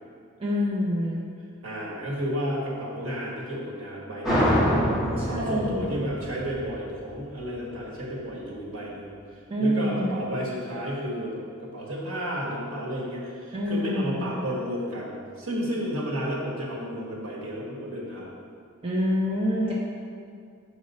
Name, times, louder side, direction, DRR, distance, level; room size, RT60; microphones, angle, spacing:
voice 1, 0.4-1.2 5.2-5.9 9.5-10.2 13.5-14.4 18.8-19.7, equal, 25° right, -5 dB, 0.6 m, -26 dB
voice 2, 1.6-4.7 5.1-9.1 9.6-18.3, equal, 70° right, -4 dB, 1.5 m, -32 dB
sound 1, 4.2-7.5, equal, ahead, 1.5 m, -25 dB
6.4 x 5.0 x 4.2 m, 2.3 s
head